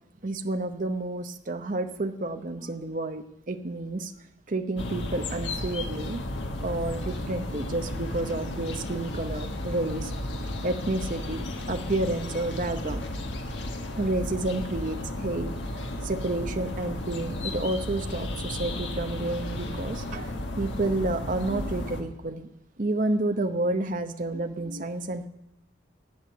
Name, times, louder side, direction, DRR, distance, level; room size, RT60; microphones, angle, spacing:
voice 1, 0.2-4.1 4.5-6.2 6.6-10.1 10.6-11.4 11.7-13.1 14.0-15.5 16.0-22.5 22.8-25.3, right 2 dB, 45° right, 7 dB, 0.8 m, -30 dB
sound 1, 4.8-22.0, left 1 dB, 85° left, 1.6 m, -34 dB
13.0 x 8.4 x 8.4 m, 0.88 s
head